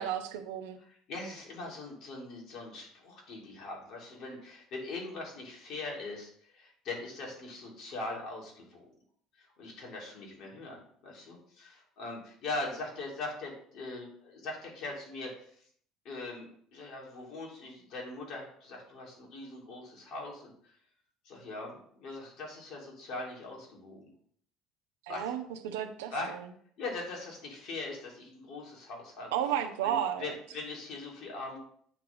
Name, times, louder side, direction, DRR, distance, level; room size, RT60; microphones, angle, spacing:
voice 1, 0.0-0.8 25.1-26.5 29.3-30.3, right 10 dB, 85° right, 7 dB, 0.7 m, -33 dB
voice 2, 0.9-8.9 9.4-15.3 16.0-20.7 21.2-24.1 25.1-25.3 26.1-26.4 26.8-29.3 29.8-31.6, left 2 dB, 65° left, -2 dB, 2.9 m, -41 dB
8.7 x 3.4 x 5.4 m, 0.62 s
hypercardioid pair, 75°, 0 cm